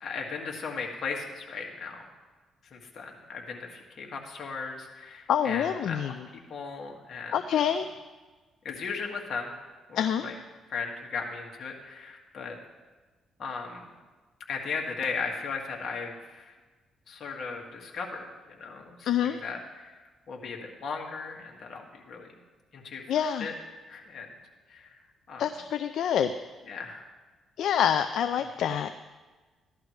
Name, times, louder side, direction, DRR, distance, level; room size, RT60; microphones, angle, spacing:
voice 1, 0.0-2.1 2.7-6.1 6.5-7.7 8.6-9.5 9.9-10.3 10.7-12.6 13.4-13.8 14.5-16.5 17.1-20.0 20.3-22.3 22.7-23.5 23.9-24.3 24.7-25.0 25.3-25.4 26.7-27.1 28.6-28.7, left 5 dB, 55° left, 1 dB, 2.1 m, -37 dB
voice 2, 5.3-6.1 7.3-7.9 10.0-10.3 19.1-19.4 23.1-23.5 25.4-26.3 27.6-29.0, left 9 dB, 75° left, 9 dB, 0.4 m, -26 dB
15.5 x 11.5 x 3.3 m, 1.3 s
cardioid pair, 90°, 0 cm